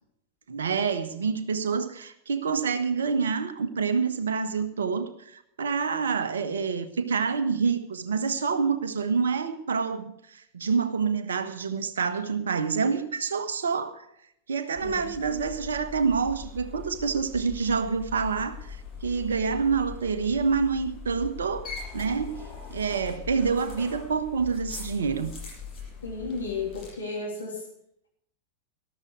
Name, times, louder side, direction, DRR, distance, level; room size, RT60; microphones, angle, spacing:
voice 1, 0.5-14.0 14.5-22.4 22.7-25.3, right 5 dB, 65° right, 10 dB, 1.3 m, -27 dB
voice 2, 14.8-15.2 26.0-27.6, left 4 dB, 75° left, -1 dB, 3.2 m, -33 dB
sound 1, 14.8-26.9, left 5 dB, 30° left, 7.2 m, -41 dB
14.0 x 12.5 x 4.8 m, 0.73 s
figure-of-eight pair, 90°, 0 cm